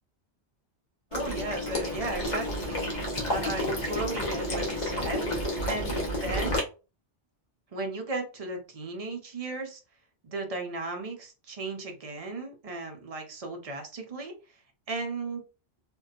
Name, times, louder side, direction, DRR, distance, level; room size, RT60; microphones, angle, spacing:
Water / Liquid, 1.1-6.6, left 1 dB, 45° left, 0.8 m, -30 dB
voice 1, 1.1-2.9 3.2-6.6 7.7-9.8 10.2-14.3 14.9-15.4, right 2 dB, 45° right, 3 dB, 0.5 m, -35 dB
2.6 x 2.2 x 2.4 m, 0.32 s
omnidirectional pair, 1.2 m